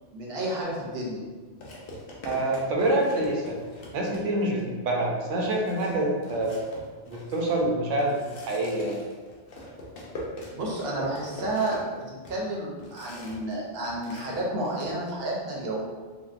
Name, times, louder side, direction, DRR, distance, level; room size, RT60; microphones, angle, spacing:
voice 1, 0.1-1.2 10.5-11.8 12.1-15.8, right 1 dB, 60° right, -3 dB, 0.8 m, -31 dB
sound 1, 0.6-0.8 1.6-4.6 5.0-5.1 5.4-13.5 13.8-14.9, left 1 dB, 60° left, 0.7 m, -43 dB
voice 2, 2.2-3.6 3.9-6.5 7.1-8.2 8.5-9.0, right 1 dB, 85° right, -1 dB, 1.0 m, -26 dB
3.6 x 2.0 x 2.4 m, 1.4 s
omnidirectional pair, 1.2 m